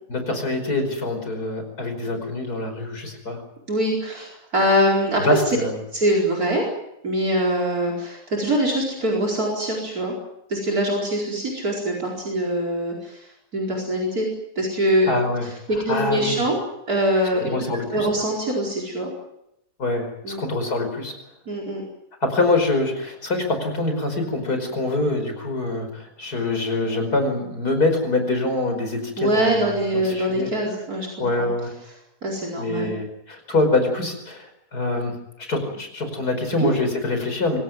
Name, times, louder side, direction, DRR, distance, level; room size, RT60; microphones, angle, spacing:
voice 1, 0.1-3.4 5.2-5.8 15.1-15.5 15.9-16.4 17.5-18.1 19.8-21.2 22.2-29.7 30.0-30.5 31.2-31.7 32.6-35.1 35.4-37.6, left 2 dB, 75° left, 6 dB, 5.6 m, -24 dB
voice 2, 3.7-5.6 5.9-6.6 7.0-10.1 10.5-14.3 14.5-16.6 16.9-17.5 17.9-19.1 20.2-20.4 21.5-21.8 29.2-31.1 31.4-31.5 32.2-32.9 36.6-36.7, equal, 65° right, 0 dB, 5.1 m, -23 dB
25.0 x 17.5 x 9.3 m, 0.82 s
omnidirectional pair, 1.7 m